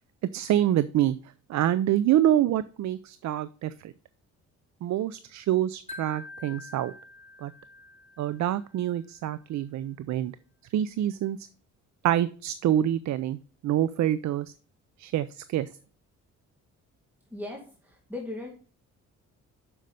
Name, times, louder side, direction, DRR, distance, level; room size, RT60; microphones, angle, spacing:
voice 1, 0.3-1.2 1.5-3.9 4.8-6.9 7.4-7.5 8.2-10.3 10.7-11.4 12.0-14.5 15.0-15.7, right 12 dB, 65° right, 15 dB, 0.5 m, -26 dB
Wind chime, 5.9-9.0, left 2 dB, 20° left, 4.2 m, -46 dB
voice 2, 17.3-18.5, left 2 dB, 5° right, -1 dB, 2.1 m, -38 dB
7.7 x 6.4 x 5.4 m, 0.40 s
cardioid pair, 90°, 30 cm